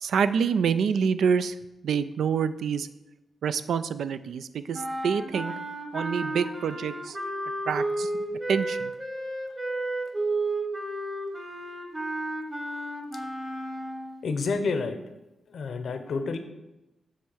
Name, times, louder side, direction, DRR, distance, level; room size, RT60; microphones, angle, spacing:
voice 1, 0.0-1.6 1.8-2.9 3.4-5.6 5.9-7.2 7.7-8.9, right 6 dB, 85° right, 13 dB, 0.3 m, -27 dB
sound 1, 4.7-14.3, right 2 dB, 20° right, 1.1 m, -32 dB
voice 2, 14.2-15.0 15.5-16.4, left 4 dB, 75° left, 8 dB, 0.7 m, -29 dB
8.0 x 3.2 x 6.2 m, 0.97 s
cardioid pair, 65°, 0 cm